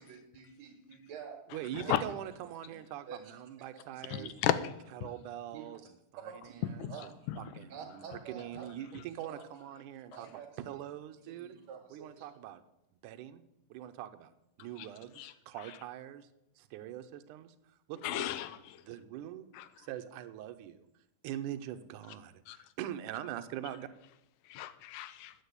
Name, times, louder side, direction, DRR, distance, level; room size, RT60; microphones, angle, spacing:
voice 1, 0.0-2.1 2.7-2.8 3.1-3.3 3.7-4.3 5.5-5.9 6.2-8.7 9.2-9.8 10.1-10.5 10.7-10.8 11.2-12.3, right 7 dB, 60° right, 1 dB, 2.6 m, -49 dB
voice 2, 1.5-4.5 4.9-5.8 6.2-11.6 11.9-12.6 13.0-13.4 13.7-14.3 14.6-16.3 16.6-17.5 17.9-18.3 18.8-19.5 19.8-20.8 21.2-23.9, right 11 dB, 75° right, 9 dB, 2.1 m, -43 dB
voice 3, 4.1-4.5 7.3-7.4 15.2-15.3 18.0-18.6 19.6-19.7 22.5-22.6 24.5-25.3, left 13 dB, 80° left, 13 dB, 2.1 m, -33 dB
9.7 x 8.3 x 8.1 m, 0.85 s
omnidirectional pair, 4.0 m